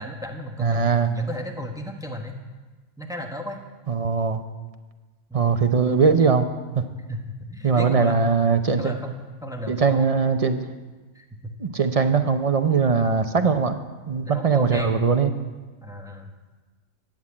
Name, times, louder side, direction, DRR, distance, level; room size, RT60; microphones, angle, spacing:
voice 1, 0.0-2.4 3.0-3.6 5.3-5.6 7.1-10.1 11.1-11.5 14.2-15.1 15.8-16.3, left 1 dB, 5° right, 3 dB, 1.1 m, -34 dB
voice 2, 0.6-1.1 3.9-4.4 5.3-6.5 6.7-6.8 7.6-8.9 9.7-10.7 11.6-13.7 14.1-15.3, right 5 dB, 40° right, 8 dB, 0.5 m, -20 dB
12.0 x 7.8 x 8.7 m, 1.3 s
omnidirectional pair, 1.4 m